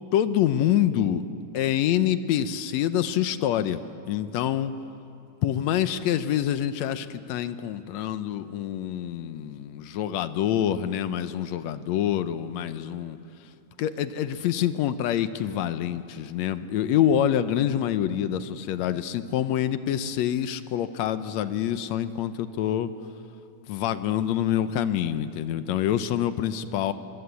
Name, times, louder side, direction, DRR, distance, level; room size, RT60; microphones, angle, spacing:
voice 1, 0.1-1.2 1.5-4.7 5.4-13.2 13.8-22.9 23.7-26.9, left 10 dB, 70° left, 12 dB, 1.9 m, -26 dB
24.5 x 23.0 x 8.2 m, 2.8 s
omnidirectional pair, 3.5 m